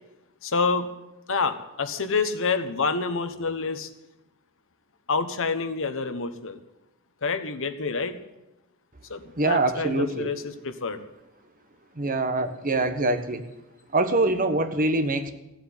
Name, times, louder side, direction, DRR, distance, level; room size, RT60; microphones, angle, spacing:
voice 1, 0.4-0.9 1.3-3.9 5.1-6.6 7.2-8.2 9.1-11.0, left 4 dB, 65° left, 9 dB, 1.2 m, -27 dB
voice 2, 9.4-10.3 12.0-13.4 13.9-15.3, right 2 dB, 40° right, 8 dB, 1.2 m, -24 dB
16.0 x 7.8 x 9.8 m, 0.95 s
head